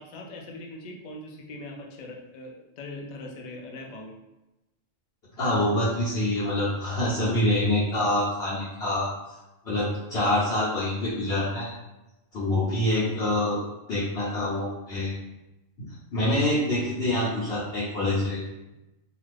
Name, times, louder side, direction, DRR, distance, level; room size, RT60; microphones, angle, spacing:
voice 1, 0.0-4.1, left 2 dB, 75° left, 0 dB, 0.4 m, -41 dB
voice 2, 5.4-9.1 9.6-11.7 12.3-13.6 13.9-15.1 16.1-18.4, left 1 dB, 60° left, -11 dB, 1.0 m, -26 dB
2.5 x 2.3 x 3.3 m, 0.97 s
omnidirectional pair, 1.3 m